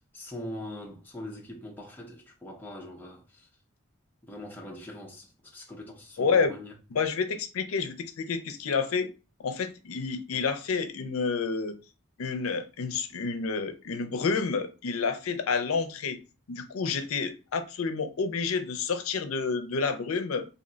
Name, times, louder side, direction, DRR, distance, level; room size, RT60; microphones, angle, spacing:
voice 1, 0.1-3.5 4.3-6.7, left 1 dB, 10° left, 0.5 m, -42 dB
voice 2, 6.2-6.5 6.9-9.1 9.4-11.8 12.2-16.2 16.5-20.4, left 5 dB, 80° left, 0.5 m, -29 dB
2.7 x 2.1 x 3.8 m
head